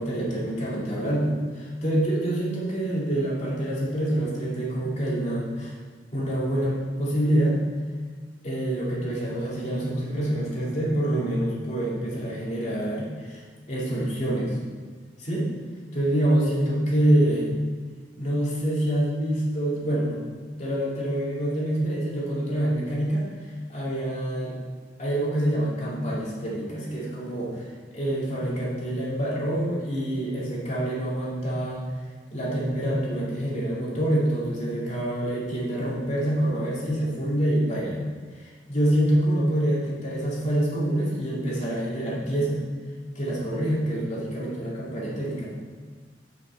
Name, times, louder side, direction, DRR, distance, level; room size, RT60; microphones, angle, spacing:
voice 1, 0.0-5.8 6.1-7.6 8.4-14.6 15.2-15.5 15.9-17.5 18.2-20.2 20.6-23.3 23.7-24.6 25.0-31.8 32.3-38.0 38.3-42.6 43.1-45.5, right 1 dB, 40° left, -6 dB, 2.3 m, -26 dB
8.2 x 6.0 x 4.4 m, 1.5 s
head